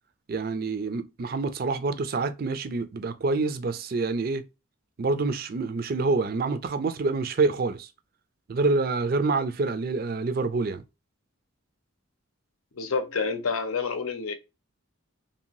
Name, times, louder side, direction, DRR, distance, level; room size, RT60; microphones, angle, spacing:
voice 1, 0.3-4.4 5.0-7.9 8.5-10.8, right 3 dB, 45° right, 0.4 m, -27 dB
voice 2, 12.7-14.3, left 5 dB, 80° left, 0.6 m, -28 dB
2.8 x 2.7 x 2.8 m
head